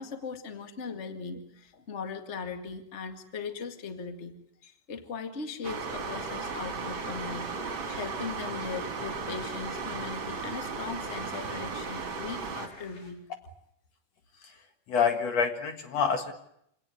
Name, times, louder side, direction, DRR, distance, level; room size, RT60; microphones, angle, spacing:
voice 1, 0.0-4.3 4.9-13.2, left 5 dB, 25° left, 6 dB, 1.9 m, -39 dB
sound 1, 5.6-12.7, right 4 dB, 40° right, 3.1 m, -36 dB
sound 2, 6.4-13.1, left 1 dB, 85° left, 6.4 m, -55 dB
voice 2, 14.9-16.3, left 6 dB, 60° left, 6 dB, 2.7 m, -27 dB
27.0 x 18.0 x 9.6 m, 0.74 s
omnidirectional pair, 3.6 m